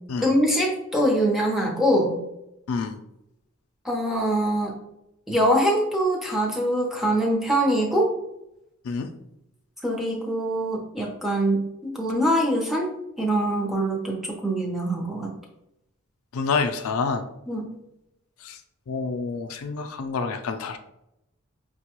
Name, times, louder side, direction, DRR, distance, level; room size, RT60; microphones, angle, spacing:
voice 1, 0.2-2.2 3.8-4.7 5.3-8.1 9.8-12.9 13.2-15.3 17.5-17.6, right 1 dB, ahead, -1 dB, 0.6 m, -23 dB
voice 2, 2.7-3.0 8.8-9.1 16.3-17.2 18.4-18.6 18.9-20.8, left 4 dB, 80° left, 6 dB, 0.4 m, -28 dB
5.4 x 2.2 x 2.9 m, 0.85 s
head